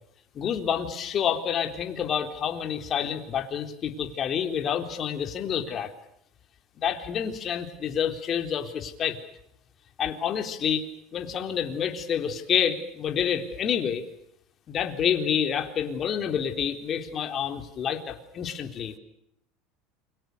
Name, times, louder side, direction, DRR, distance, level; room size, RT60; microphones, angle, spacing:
voice 1, 0.3-5.9 6.8-9.2 10.0-14.0 14.7-18.9, left 8 dB, 40° left, 6 dB, 3.9 m, -28 dB
29.5 x 24.0 x 6.9 m, 0.77 s
supercardioid pair, 100°, 0 cm